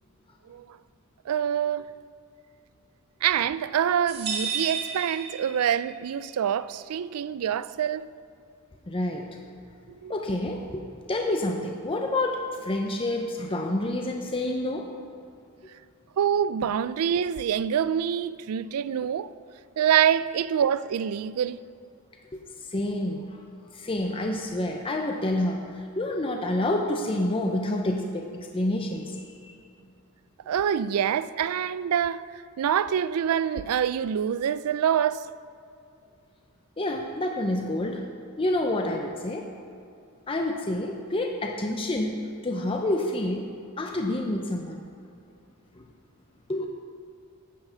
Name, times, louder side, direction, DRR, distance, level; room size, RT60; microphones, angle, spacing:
voice 1, 1.3-1.9 3.2-8.1 9.9-10.1 16.2-19.3 19.8-21.6 30.5-32.2 32.6-35.2, right 9 dB, 80° right, 0.3 m, -25 dB
sound 1, 4.1-6.0, right 6 dB, 50° right, 1.9 m, -33 dB
voice 2, 8.9-9.3 10.1-14.9 22.3-22.4 22.7-23.4 23.7-29.5 36.8-38.0 38.4-39.5 40.3-42.1 42.4-43.5 43.8-44.8 45.8-45.9 46.5-46.7, left 1 dB, 25° left, 0.6 m, -28 dB
10.0 x 5.6 x 6.9 m
head